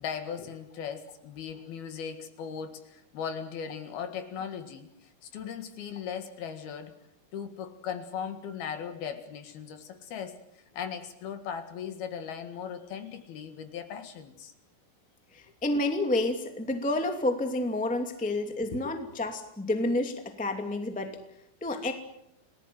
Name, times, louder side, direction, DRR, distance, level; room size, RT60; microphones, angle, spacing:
voice 1, 0.0-6.9 7.3-14.5 18.9-19.0, left 7 dB, 65° left, 8 dB, 3.5 m, -38 dB
voice 2, 15.3-21.2 21.6-21.9, left 2 dB, 5° left, 5 dB, 1.2 m, -29 dB
30.0 x 19.5 x 7.7 m, 0.80 s
omnidirectional pair, 5.1 m